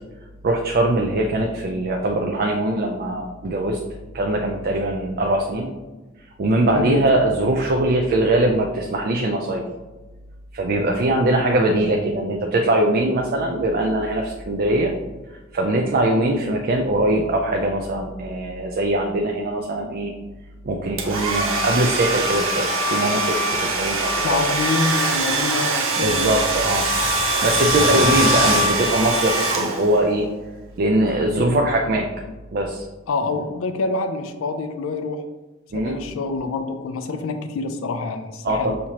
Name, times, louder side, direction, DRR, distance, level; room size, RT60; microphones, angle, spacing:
voice 1, 0.4-3.8 4.1-5.7 6.4-9.6 10.5-14.9 15.5-20.1 20.6-24.4 26.0-26.9 27.4-30.3 30.8-32.1 32.5-32.8 35.7-36.0 38.4-38.8, right 1 dB, 45° right, 1 dB, 0.4 m, -21 dB
voice 2, 6.6-7.0 24.2-26.3 27.8-28.2 31.4-31.7 33.1-35.2 35.7-38.8, left 3 dB, 75° left, 8 dB, 0.4 m, -26 dB
Domestic sounds home sounds, 21.0-30.1, right 1 dB, 80° right, 0.8 m, -22 dB
6.3 x 2.8 x 2.8 m, 1.2 s
head